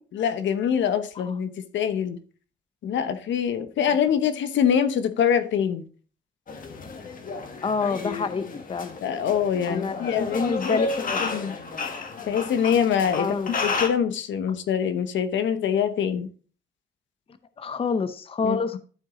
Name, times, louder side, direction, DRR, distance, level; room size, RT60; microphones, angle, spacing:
voice 1, 0.1-2.2 2.8-5.8 9.0-10.8 11.2-11.5 12.3-16.3 18.4-18.6, left 8 dB, 70° left, 0.9 m, -24 dB
sound 1, 6.5-13.9, left 3 dB, 45° left, 1.5 m, -32 dB
voice 2, 7.6-9.0 9.7-11.2 13.2-13.5 17.6-18.8, left 5 dB, 30° left, 0.6 m, -27 dB
11.5 x 4.6 x 3.7 m
cardioid pair, 90°, 20 cm